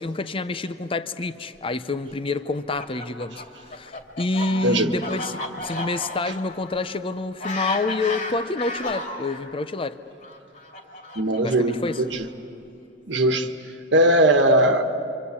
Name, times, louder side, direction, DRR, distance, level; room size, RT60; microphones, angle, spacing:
voice 1, 0.0-10.0 11.4-12.0, left 3 dB, 30° left, 0.6 m, -28 dB
Fowl, 2.5-9.4 10.2-12.3, left 2 dB, 45° left, 2.7 m, -34 dB
voice 2, 11.1-12.3 13.1-13.5 13.9-14.8, right 1 dB, 70° right, 1.3 m, -19 dB
27.0 x 26.0 x 8.3 m
head